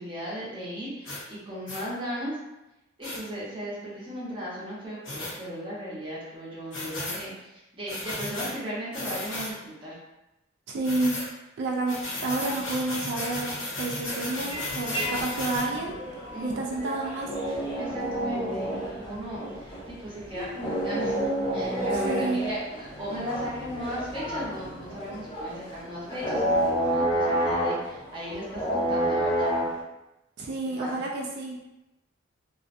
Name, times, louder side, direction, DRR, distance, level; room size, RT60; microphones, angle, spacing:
voice 1, 0.0-2.4 3.0-10.0 16.3-16.7 17.8-21.2 21.5-29.5 30.8-30.9, equal, 25° right, -8 dB, 0.8 m, -36 dB
sound 1, 1.0-1.2 1.7-1.8 3.0-3.2 5.0-5.3 6.7-7.2 7.9-8.5 8.9-9.5 10.8-11.3 11.9-15.7, left 1 dB, 70° left, 0.8 m, -34 dB
voice 2, 10.7-11.2 11.6-13.5 13.8-16.0 16.4-17.3 21.9-22.5 30.4-31.6, right 2 dB, 60° right, 0 dB, 0.3 m, -30 dB
sound 2, 14.5-29.8, right 1 dB, 25° left, 0.7 m, -30 dB
2.5 x 2.2 x 2.5 m, 0.95 s
head